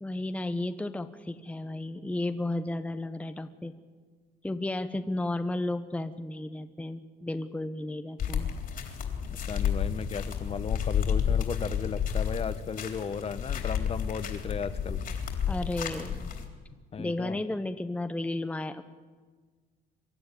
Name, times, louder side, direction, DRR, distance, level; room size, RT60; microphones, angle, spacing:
voice 1, 0.0-3.7 4.4-8.5 15.5-16.3 17.0-18.8, left 2 dB, 10° left, 9 dB, 0.9 m, -33 dB
sound 1, 8.2-16.5, left 7 dB, 55° left, 3.6 m, -31 dB
voice 2, 9.3-15.0 16.9-17.4, left 6 dB, 35° left, 12 dB, 1.2 m, -35 dB
24.0 x 13.0 x 9.8 m, 1.5 s
cardioid pair, 110°, 17 cm